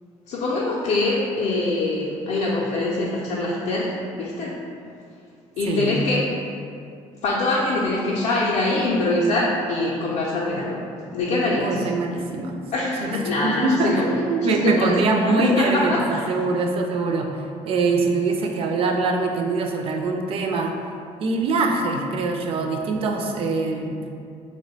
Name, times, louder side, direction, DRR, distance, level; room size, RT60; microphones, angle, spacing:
voice 1, 0.3-4.6 5.6-6.3 7.2-10.9 11.1-11.9 12.7-14.9 15.3-16.3, left 2 dB, 65° left, -5 dB, 0.4 m, -24 dB
voice 2, 5.7-6.0 11.5-12.6 13.0-13.1 13.4-17.3 17.6-20.7 21.2-24.0, right 3 dB, 50° right, 3 dB, 0.4 m, -23 dB
3.2 x 2.1 x 3.9 m, 2.4 s
cardioid pair, 120°, 12 cm